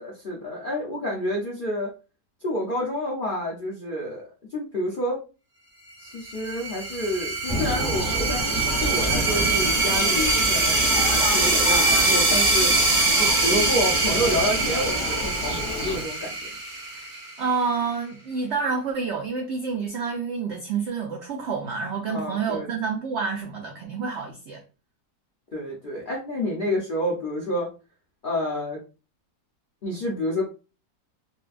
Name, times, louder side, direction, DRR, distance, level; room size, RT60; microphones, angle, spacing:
voice 1, 0.0-1.9 2.4-5.2 6.0-8.5 8.8-10.8 11.1-12.7 13.2-16.4 22.1-22.7 25.5-27.7 28.2-28.8 29.8-30.4, left 1 dB, 60° left, 0.5 m, -29 dB
sound 1, 6.3-17.5, right 3 dB, 40° right, 0.7 m, -23 dB
Thunder, 7.5-16.0, left 1 dB, 30° left, 0.9 m, -30 dB
voice 2, 17.4-24.6, right 5 dB, 80° right, 0.6 m, -28 dB
4.0 x 2.2 x 2.4 m
omnidirectional pair, 1.8 m